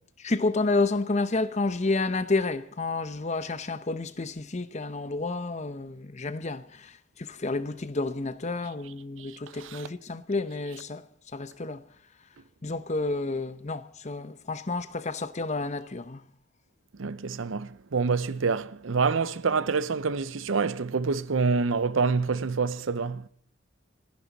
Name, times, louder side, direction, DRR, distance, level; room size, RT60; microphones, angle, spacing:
voice 1, 0.2-11.0 11.3-11.8 12.6-16.2, left 3 dB, 35° left, 0.8 m, -30 dB
voice 2, 17.0-23.3, right 4 dB, 85° right, 0.6 m, -27 dB
30.0 x 10.5 x 4.1 m
head